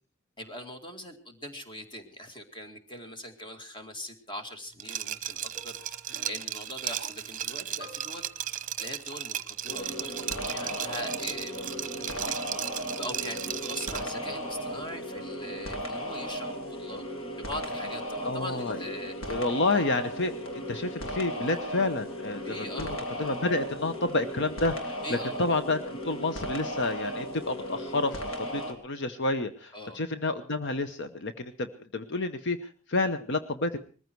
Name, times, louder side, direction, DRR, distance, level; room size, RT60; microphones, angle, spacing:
voice 1, 0.4-6.0 6.3-8.3 8.8-12.6 13.0-17.0 17.4-19.3 22.4-23.1 25.0-25.5 29.7-30.0, equal, 25° left, 6 dB, 2.2 m, -41 dB
Liquid, 4.8-14.1, right 11 dB, 40° right, 0.9 m, -35 dB
sound 1, 5.5-10.7 11.6-11.7, right 1 dB, 15° right, 3.6 m, -53 dB
sound 2, 9.7-28.7, equal, 80° left, 3.3 m, -36 dB
voice 2, 18.2-18.8 19.3-31.7 31.9-33.8, left 2 dB, 60° left, 9 dB, 0.9 m, -30 dB
21.0 x 14.5 x 4.6 m, 0.38 s
head